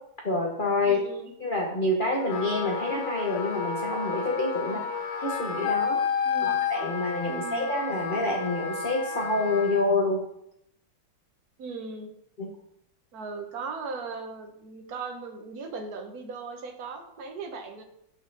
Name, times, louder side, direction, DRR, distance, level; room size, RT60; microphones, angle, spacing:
voice 1, 0.2-1.0 1.4-5.0 5.2-6.0 6.4-10.2 12.4-12.5, left 2 dB, 40° left, -1 dB, 0.8 m, -27 dB
voice 2, 0.9-1.3 4.6-4.9 6.2-6.6 7.3-7.7 11.6-12.1 13.1-17.8, right 4 dB, 50° right, 4 dB, 1.4 m, -38 dB
Wind instrument woodwind instrument, 2.1-9.8, left 6 dB, 80° left, 1.8 m, -31 dB
8.8 x 6.3 x 3.9 m, 0.78 s
omnidirectional pair, 2.3 m